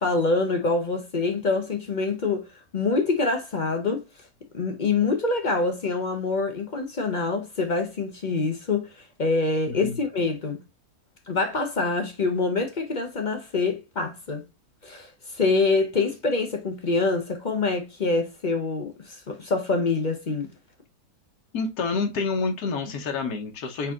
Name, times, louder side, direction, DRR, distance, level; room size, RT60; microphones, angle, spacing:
voice 1, 0.0-2.4 2.7-4.0 4.5-8.9 9.2-10.6 11.3-14.4 14.8-20.5, left 3 dB, 45° left, 0.6 m, -25 dB
voice 2, 9.7-10.0 21.5-23.9, left 4 dB, 85° left, 1.4 m, -28 dB
4.4 x 4.2 x 2.3 m
omnidirectional pair, 1.6 m